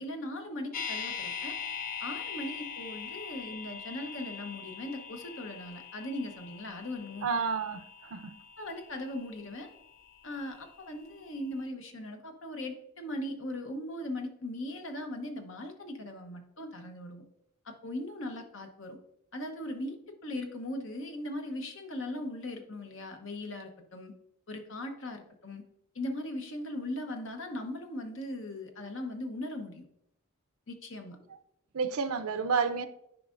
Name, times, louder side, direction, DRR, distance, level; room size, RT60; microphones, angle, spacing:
voice 1, 0.0-1.5 2.0-7.3 8.6-9.7 10.2-17.3 17.6-19.0 19.3-20.0 20.2-24.1 24.5-25.6 25.9-29.9 30.7-31.2, left 1 dB, 60° left, 0.9 m, -39 dB
sound 1, 0.7-10.8 11.1-11.2, left 6 dB, 40° left, 0.5 m, -42 dB
voice 2, 7.2-7.8 8.1-8.3 31.7-32.9, right 5 dB, 80° right, 0.5 m, -30 dB
9.8 x 4.8 x 2.5 m
head